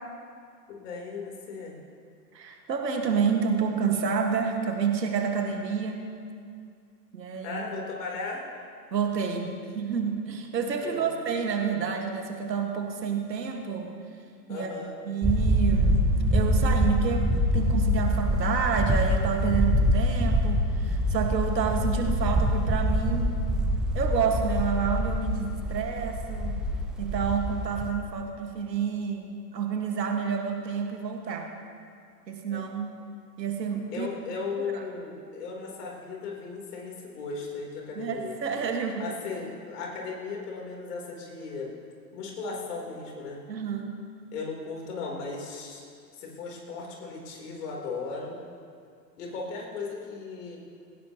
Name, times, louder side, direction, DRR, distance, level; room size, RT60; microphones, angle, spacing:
voice 1, 0.7-1.8 7.4-8.4 10.8-11.2 14.5-15.0 32.5-32.6 33.9-38.4 39.0-41.7 42.1-43.4 44.3-45.9 46.2-48.4 49.2-50.6, left 4 dB, 65° left, -2 dB, 4.0 m, -36 dB
voice 2, 2.3-6.1 7.1-7.7 8.9-13.9 14.5-14.7 15.0-16.1 16.3-23.4 23.9-26.6 27.0-31.5 32.3-32.9 33.4-34.1 34.6-34.8 38.0-39.1 43.5-44.0, right 6 dB, 80° right, 3 dB, 2.0 m, -29 dB
sound 1, 15.2-27.9, equal, ahead, 0.3 m, -25 dB
18.5 x 16.5 x 3.1 m, 2.3 s
figure-of-eight pair, 95°, 50 cm